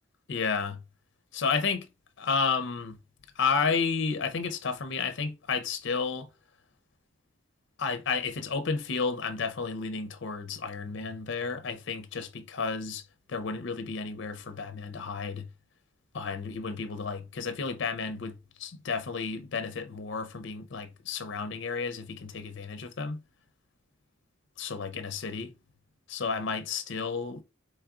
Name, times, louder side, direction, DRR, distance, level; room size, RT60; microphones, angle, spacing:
voice 1, 0.3-0.8 1.3-1.9 2.2-2.9 3.4-6.3 7.8-13.0 13.3-15.5 16.1-18.3 18.6-23.2 24.6-25.5 26.1-27.4, left 5 dB, 65° left, 0.5 m, -32 dB
4.6 x 3.2 x 2.4 m
head